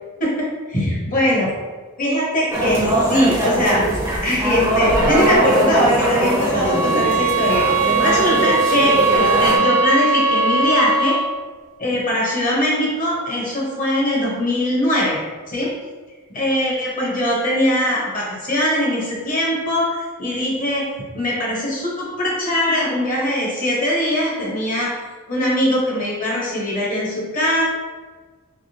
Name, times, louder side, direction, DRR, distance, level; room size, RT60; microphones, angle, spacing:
voice 1, 0.7-1.5 2.0-3.8 4.2-11.2 11.8-15.2 15.5-15.7 16.3-20.8 21.1-25.0 25.3-27.7, left 1 dB, 35° left, -4 dB, 1.0 m, -21 dB
sound 1, 2.5-9.6, right 1 dB, 10° right, 0.5 m, -21 dB
sound 2, 6.6-11.3, right 3 dB, 80° right, 0.6 m, -19 dB
3.5 x 2.9 x 2.7 m, 1.4 s
head